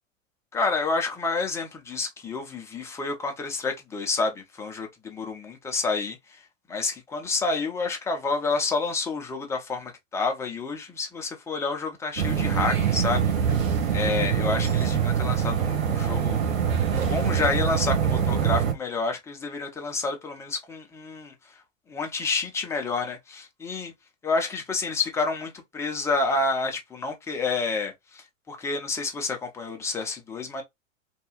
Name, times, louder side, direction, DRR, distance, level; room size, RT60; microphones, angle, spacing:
voice 1, 0.5-6.4 6.7-13.6 13.9-16.4 17.1-21.3 21.9-23.9 24.2-30.6, left 3 dB, 5° left, 0.4 m, -29 dB
sound 1, 12.2-18.7, right 7 dB, 75° right, 0.8 m, -24 dB
2.8 x 2.3 x 2.8 m
figure-of-eight pair, 100°, 39 cm